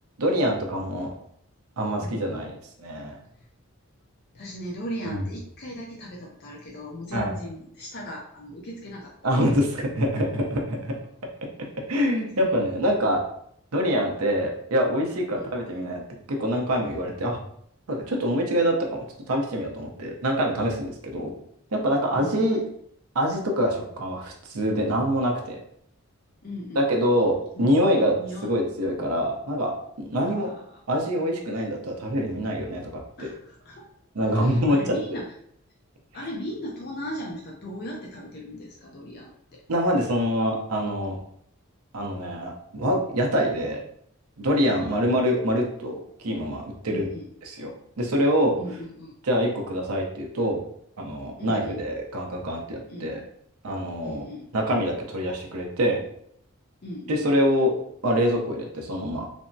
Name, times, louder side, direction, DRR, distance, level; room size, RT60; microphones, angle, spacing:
voice 1, 0.2-1.1 1.8-2.5 2.8-3.2 5.1-5.2 7.1-7.3 9.2-10.9 11.9-13.2 13.7-16.0 16.3-17.4 17.9-21.3 21.7-22.6 23.1-25.6 26.7-28.2 28.4-29.7 30.0-30.5 30.9-33.3 34.1-35.2 39.7-41.2 41.9-43.8 44.4-46.0 46.2-47.1 47.4-47.7 48.0-48.5 49.2-50.6 51.0-53.2 53.6-54.3 54.5-56.0 57.1-57.7 58.0-59.3, equal, 85° right, 1 dB, 0.6 m, -25 dB
voice 2, 2.0-2.5 3.3-3.5 4.3-9.3 12.4-12.7 15.3-15.5 22.1-22.7 26.4-26.9 27.6-27.7 28.2-28.5 30.1-30.6 33.2-33.9 34.2-35.3 36.1-39.6 44.7-45.2 46.9-47.3 48.6-49.1 51.4-51.8 52.9-53.1 54.0-54.5 56.8-57.3, equal, 45° left, -2 dB, 0.4 m, -38 dB
3.4 x 2.0 x 2.6 m, 0.69 s
head